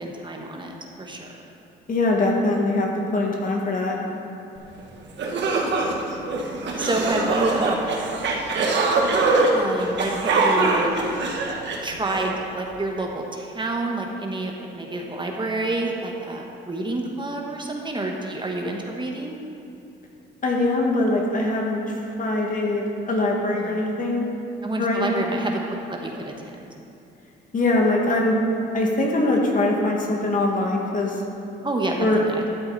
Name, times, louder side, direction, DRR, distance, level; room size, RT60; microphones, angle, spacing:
voice 1, 0.0-1.4 6.1-6.4 6.8-7.8 9.5-11.3 11.8-19.4 23.5-23.8 24.6-26.3 26.6-26.7 31.6-32.4, right 2 dB, 25° right, 0 dB, 1.2 m, -28 dB
voice 2, 1.9-4.0 20.4-24.3 24.8-25.3 27.5-28.4 28.7-31.2 32.0-32.2, left 2 dB, 40° left, -1 dB, 1.9 m, -22 dB
sound 1, 4.8-4.9 5.2-12.3, right 3 dB, 65° right, 1.4 m, -23 dB
13.0 x 7.8 x 4.1 m, 2.7 s
cardioid pair, 90°, 20 cm